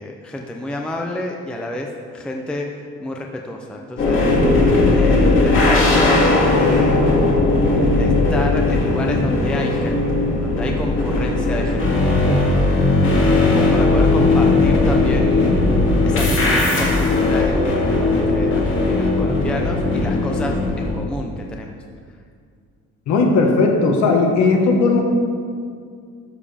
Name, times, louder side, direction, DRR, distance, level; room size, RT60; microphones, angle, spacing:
voice 1, 0.0-1.9 2.1-2.7 3.0-4.2 4.8-7.3 7.9-12.4 13.0-15.7 16.0-21.8, left 1 dB, 5° left, 1 dB, 0.4 m, -30 dB
sound 1, 4.0-20.9, left 2 dB, 45° left, 2.0 m, -17 dB
voice 2, 23.1-25.0, left 3 dB, 70° left, 1 dB, 1.4 m, -16 dB
12.5 x 7.0 x 3.4 m, 2.2 s
cardioid pair, 170°, 30 cm